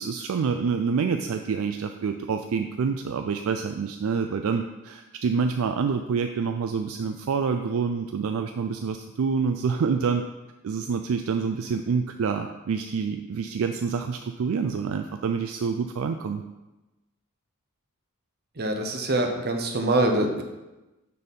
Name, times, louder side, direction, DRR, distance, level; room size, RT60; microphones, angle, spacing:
voice 1, 0.0-10.2 10.6-16.4, right 5 dB, 65° right, 6 dB, 0.3 m, -27 dB
voice 2, 18.6-20.4, right 1 dB, 45° right, 4 dB, 0.8 m, -24 dB
6.6 x 4.2 x 5.3 m, 1.1 s
head